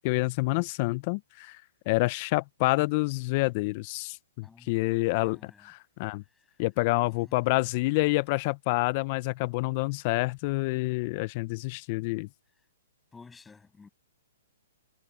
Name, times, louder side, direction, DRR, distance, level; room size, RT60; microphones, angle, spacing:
voice 1, 0.0-6.2 6.6-12.3, left 23 dB, 40° left, 0.6 m, -28 dB
voice 2, 4.4-5.7 6.2-6.6 7.0-7.5 13.1-13.9, left 4 dB, 10° left, 7.5 m, -54 dB
hypercardioid pair, 140°, 0 cm